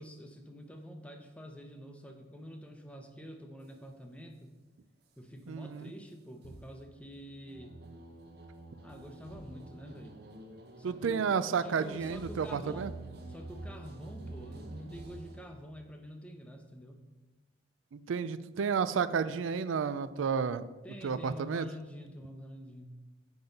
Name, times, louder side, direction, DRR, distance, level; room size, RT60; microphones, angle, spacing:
voice 1, 0.0-4.5 5.2-7.8 8.8-10.2 10.8-12.9 13.3-17.1 20.8-22.9, equal, 5° left, 4 dB, 0.7 m, -47 dB
voice 2, 5.5-5.9 10.8-12.9 17.9-20.7 21.0-21.7, right 6 dB, 90° right, 14 dB, 0.4 m, -31 dB
sound 1, 6.4-15.4, right 2 dB, 55° right, 0.8 m, -48 dB
7.8 x 5.5 x 5.2 m, 1.2 s
head